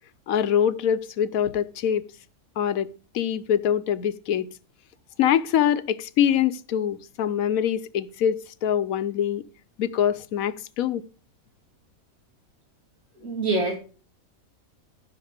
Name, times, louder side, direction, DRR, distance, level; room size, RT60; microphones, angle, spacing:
voice 1, 0.3-2.0 2.6-2.9 3.1-4.5 5.2-9.4 9.8-11.0, left 9 dB, 85° left, 1.1 m, -24 dB
voice 2, 13.2-13.7, right 2 dB, 80° right, 3.2 m, -25 dB
15.0 x 6.0 x 5.0 m
omnidirectional pair, 1.4 m